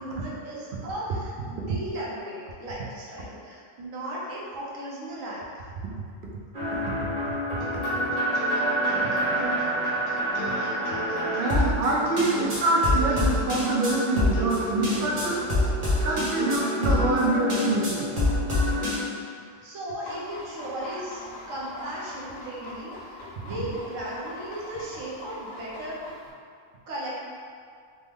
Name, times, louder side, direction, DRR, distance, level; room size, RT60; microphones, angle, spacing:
voice 1, 0.0-5.6 19.6-21.2 21.5-26.0 26.9-27.2, right 1 dB, 80° right, -5 dB, 1.1 m, -36 dB
sound 1, 6.6-19.0, left 1 dB, 35° right, 0.8 m, -27 dB
sound 2, 7.6-17.2, equal, 70° left, 0.9 m, -38 dB
voice 2, 9.4-9.8 11.3-15.4 16.0-18.1, right 2 dB, 60° right, -3 dB, 0.6 m, -25 dB
sound 3, 20.0-26.3, left 1 dB, 90° left, 1.2 m, -42 dB
3.3 x 2.0 x 3.4 m, 2.2 s
omnidirectional pair, 1.4 m